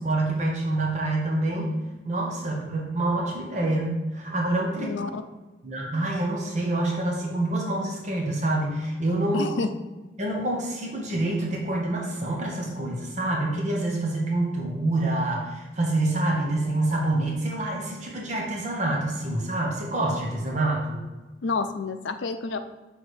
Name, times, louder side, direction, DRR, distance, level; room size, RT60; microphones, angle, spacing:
voice 1, 0.0-1.7 2.0-4.9 5.6-9.5 10.2-21.0, right 2 dB, 40° right, -1 dB, 1.0 m, -27 dB
voice 2, 4.8-5.2 9.3-9.7 21.4-22.6, left 4 dB, 85° left, 9 dB, 0.5 m, -29 dB
6.2 x 3.6 x 4.8 m, 1.2 s
head